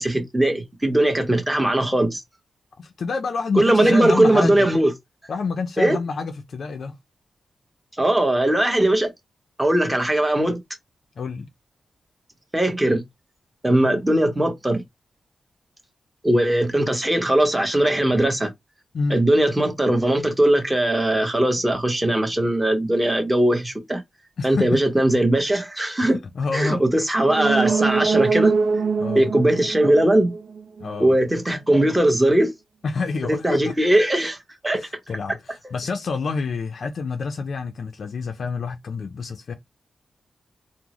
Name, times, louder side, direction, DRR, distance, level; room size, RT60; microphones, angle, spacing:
voice 1, 0.0-2.2 3.5-4.9 5.8-6.0 8.0-9.1 9.6-10.6 12.5-13.0 13.6-14.8 16.2-18.5 19.1-24.0 24.4-26.2 26.5-28.6 29.1-30.3 31.0-32.5 33.3-34.4 34.6-34.8, right 1 dB, 10° right, 1.0 m, -19 dB
voice 2, 2.8-4.7 5.3-7.0 11.2-11.5 18.9-19.2 24.4-24.8 26.0-26.8 29.0-29.3 30.8-31.2 32.8-33.7 34.7-39.5, left 4 dB, 65° left, 0.4 m, -28 dB
sound 1, 27.2-30.9 31.2-31.3, right 4 dB, 70° right, 0.5 m, -23 dB
3.7 x 2.1 x 3.0 m
wide cardioid pair, 100°, 0 cm